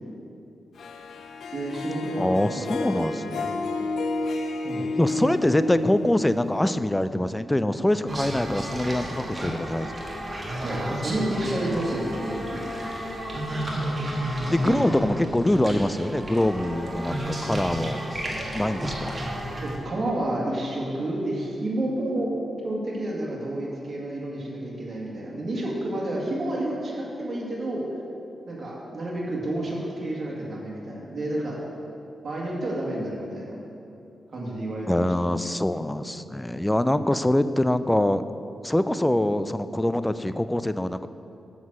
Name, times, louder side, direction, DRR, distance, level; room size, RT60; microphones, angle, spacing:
Harp, 0.8-7.0, left 3 dB, 80° left, 0.6 m, -31 dB
voice 1, 1.5-3.5 4.6-5.4 10.6-12.6 14.6-15.0 19.6-22.3 22.6-27.9 28.5-31.6 32.2-33.5 34.3-35.4, right 1 dB, 50° right, -4 dB, 2.0 m, -30 dB
voice 2, 2.2-3.5 5.0-9.9 14.5-18.0 18.5-19.2 34.9-38.2 38.6-41.1, left 1 dB, 10° left, 13 dB, 0.3 m, -24 dB
sound 1, 8.1-19.8, right 1 dB, 30° right, 1.7 m, -32 dB
7.3 x 6.0 x 6.2 m, 2.7 s
cardioid pair, 85°, 0 cm